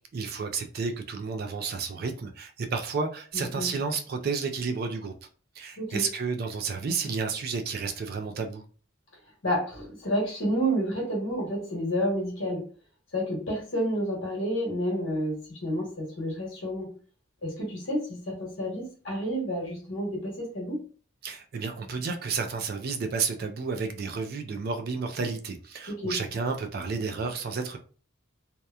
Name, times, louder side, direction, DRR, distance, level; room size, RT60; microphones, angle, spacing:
voice 1, 0.1-5.1 5.6-8.6 21.2-27.8, right 5 dB, 50° right, 0.3 m, -31 dB
voice 2, 3.3-3.7 5.8-6.0 9.4-12.6 13.1-16.9 17.4-20.8 25.9-26.2, equal, 70° left, 1.1 m, -30 dB
2.8 x 2.1 x 2.3 m
head